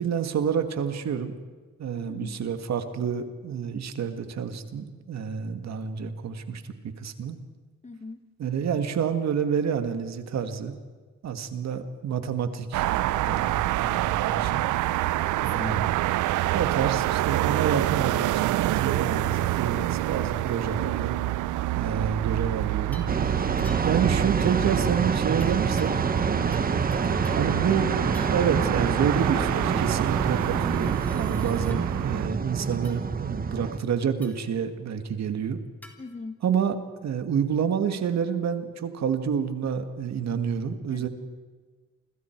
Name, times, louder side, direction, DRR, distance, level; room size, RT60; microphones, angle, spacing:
voice 1, 0.0-1.4 1.8-6.6 7.0-7.4 8.4-10.8 11.2-14.7 15.4-15.9 16.5-21.1 21.8-23.1 23.8-25.9 26.2-26.7 27.4-27.9 28.3-35.6 36.4-36.7 37.0-41.1, right 7 dB, 60° right, 8 dB, 1.9 m, -28 dB
voice 2, 1.9-2.4 7.8-8.2 15.1-15.9 31.5-31.7 36.0-36.4 40.9-41.1, left 3 dB, 25° left, 9 dB, 1.7 m, -40 dB
sound 1, 12.7-32.3, right 16 dB, 80° right, 0.6 m, -27 dB
sound 2, 22.9-23.2 23.6-24.1 25.4-26.3 26.5-27.5 28.1-28.5 30.2-31.8 32.8-33.0 34.2-34.5 35.8-36.0, equal, 5° left, 3.6 m, -50 dB
sound 3, 23.1-33.8, right 5 dB, 30° right, 1.2 m, -27 dB
29.0 x 25.5 x 4.7 m, 1.4 s
cardioid pair, 90°, 30 cm